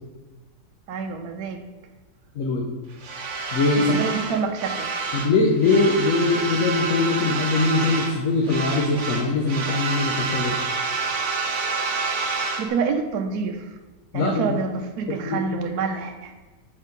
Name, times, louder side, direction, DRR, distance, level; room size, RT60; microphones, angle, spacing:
voice 1, 0.9-1.6 3.9-4.9 12.6-13.6 14.1-16.3, right 5 dB, 70° right, 4 dB, 1.0 m, -27 dB
voice 2, 2.3-2.7 3.5-3.9 5.1-10.6 14.1-14.6 15.3-15.5, left 3 dB, 55° left, 0 dB, 1.0 m, -22 dB
sound 1, 3.0-5.3 5.6-8.2 8.5-12.7, right 4 dB, 55° right, 0.9 m, -28 dB
7.1 x 3.6 x 5.2 m, 1.3 s
omnidirectional pair, 1.9 m